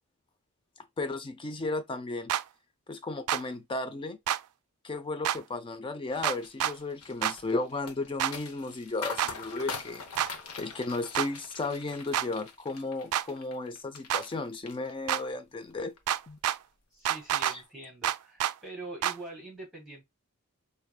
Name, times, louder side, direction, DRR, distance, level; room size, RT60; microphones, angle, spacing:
voice 1, 1.0-2.3 2.9-4.2 4.8-10.0 10.6-15.9 16.3-16.4, left 3 dB, 25° left, 0.4 m, -34 dB
sound 1, 2.3-2.4 3.3-3.4 4.3-4.4 5.2-5.4 6.2-6.7 7.2-7.4 8.2-8.3 9.2-9.3 10.2-10.3 11.1-11.3 12.1-12.3 13.1-13.3 14.1-14.2 15.1-15.2 16.1-16.6 17.1-17.6 18.0-18.5 19.0-19.2, right 11 dB, 85° right, 0.3 m, -28 dB
sound 2, 6.1-14.4 14.7-15.3 15.7-16.0, left 4 dB, 80° left, 0.8 m, -43 dB
voice 2, 16.9-20.1, right 2 dB, ahead, 2.3 m, -44 dB
4.5 x 2.7 x 2.2 m
head